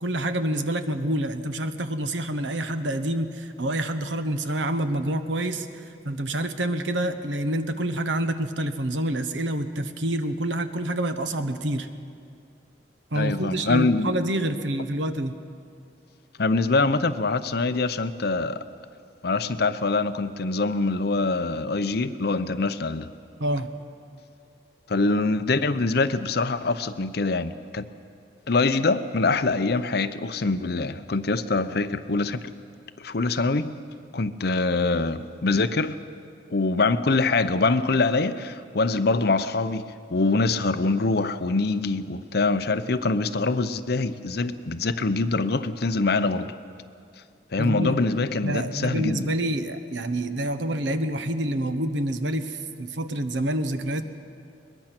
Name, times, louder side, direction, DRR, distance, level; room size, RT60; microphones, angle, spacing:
voice 1, 0.0-11.9 13.1-15.4 23.4-23.7 47.6-48.0 48.4-54.0, right 1 dB, 90° right, 9 dB, 1.1 m, -27 dB
voice 2, 13.2-14.1 16.4-18.6 19.2-23.1 24.9-27.9 28.5-32.4 33.0-33.7 34.1-36.0 36.5-39.8 40.1-46.5 47.5-49.3, left 3 dB, 60° left, 12 dB, 0.7 m, -24 dB
22.0 x 20.5 x 6.0 m, 2.3 s
head